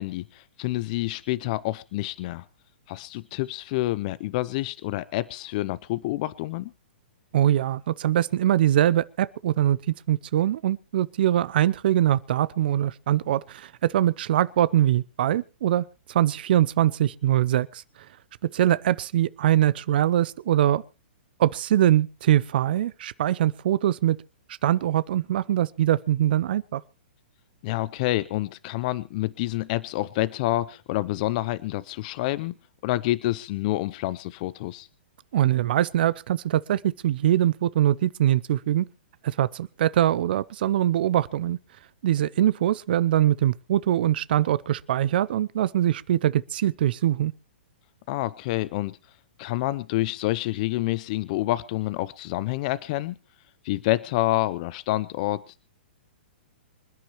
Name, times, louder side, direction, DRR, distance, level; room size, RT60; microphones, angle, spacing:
voice 1, 0.0-2.4 2.9-6.7 27.6-32.6 32.8-34.9 48.1-49.0 49.4-53.2 53.6-55.6, left 17 dB, 45° left, 0.6 m, -28 dB
voice 2, 7.3-17.8 18.4-20.8 21.4-24.2 24.6-26.8 35.3-38.9 39.2-41.6 42.0-47.3, right 12 dB, 60° right, 0.6 m, -23 dB
26.0 x 10.0 x 3.1 m
hypercardioid pair, 125°, 6 cm